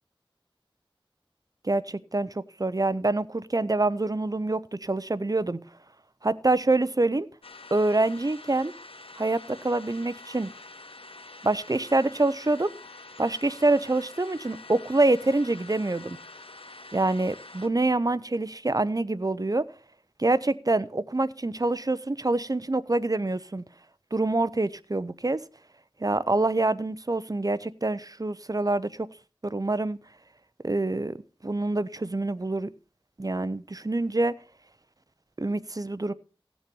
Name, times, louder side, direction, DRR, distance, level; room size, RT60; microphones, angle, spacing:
voice 1, 1.6-2.3 2.6-5.6 6.2-7.3 7.7-8.7 9.2-10.5 11.4-12.7 13.2-16.2 16.9-19.6 20.2-23.6 24.1-25.4 26.0-29.1 29.4-30.0 30.6-31.2 31.4-32.7 33.2-34.3 35.4-36.1, right 2 dB, 40° right, 0.7 m, -26 dB
sound 1, 7.4-17.7, left 3 dB, 90° left, 0.9 m, -46 dB
16.0 x 7.2 x 5.3 m
wide cardioid pair, 45°, 9 cm